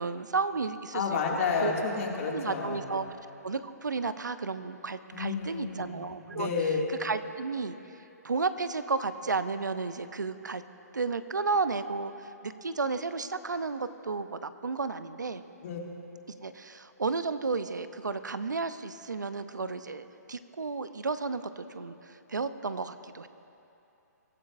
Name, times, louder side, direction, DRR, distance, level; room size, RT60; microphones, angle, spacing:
voice 1, 0.0-1.7 2.3-3.1 3.4-7.8 8.2-10.6 10.9-15.4 16.4-23.3, right 4 dB, 90° right, 12 dB, 0.7 m, -33 dB
voice 2, 0.9-3.1 5.1-6.0 6.3-7.0 15.6-15.8, left 5 dB, 50° left, -1 dB, 2.4 m, -31 dB
23.0 x 13.0 x 2.6 m, 2.8 s
hypercardioid pair, 135°, 10 cm